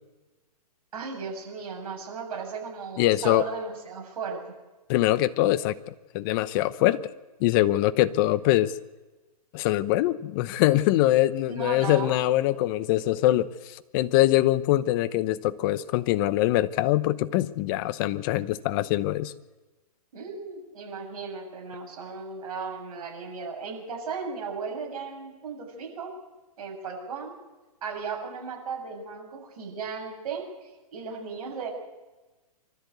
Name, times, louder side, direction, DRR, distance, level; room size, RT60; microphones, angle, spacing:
voice 1, 0.9-4.6 11.5-12.2 20.1-26.1 26.6-27.3 27.8-30.5 30.9-31.7, right 5 dB, 60° right, 1 dB, 7.0 m, -36 dB
voice 2, 3.0-3.5 4.9-7.1 7.4-8.7 9.5-19.3, left 15 dB, 35° left, 14 dB, 0.9 m, -23 dB
24.5 x 13.5 x 8.2 m, 1.2 s
hypercardioid pair, 145°, 20 cm